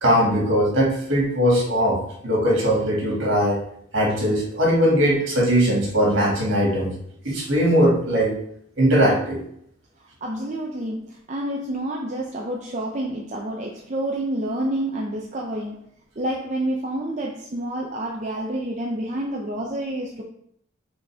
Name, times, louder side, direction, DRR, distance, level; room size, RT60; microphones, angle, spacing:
voice 1, 0.0-3.6 3.9-6.9 7.2-8.4 8.8-9.4, equal, 60° right, -3 dB, 2.4 m, -20 dB
voice 2, 10.2-15.8 16.2-20.2, right 1 dB, 35° right, -1 dB, 0.6 m, -28 dB
6.3 x 4.2 x 3.6 m, 0.69 s
head